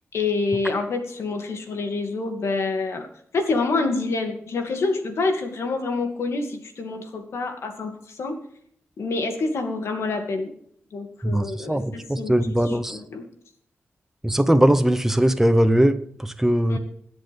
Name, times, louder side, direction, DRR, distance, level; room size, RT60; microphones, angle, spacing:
voice 1, 0.1-3.1 3.3-8.4 9.0-10.5 10.9-13.2 16.7-16.8, left 3 dB, 85° left, 5 dB, 2.5 m, -27 dB
voice 2, 11.2-13.0 14.2-16.8, right 1 dB, 10° right, 9 dB, 1.1 m, -20 dB
21.5 x 8.0 x 3.6 m, 0.64 s
wide cardioid pair, 95°, 4 cm